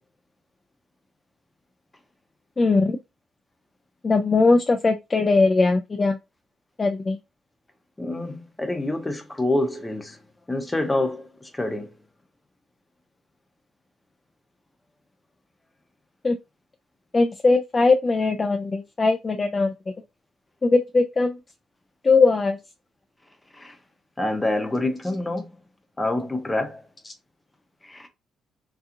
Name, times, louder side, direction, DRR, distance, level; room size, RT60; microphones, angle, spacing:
voice 1, 2.6-3.0 4.0-6.2 6.8-7.2 16.2-16.4 17.1-19.7 20.6-21.4 22.0-22.6, left 3 dB, 30° left, 0.3 m, -20 dB
voice 2, 8.0-10.2 10.5-11.9 23.5-23.8 24.2-25.5 26.0-26.8 27.8-28.1, left 2 dB, 15° left, 0.7 m, -27 dB
2.8 x 2.3 x 2.5 m
cardioid pair, 90°, 0 cm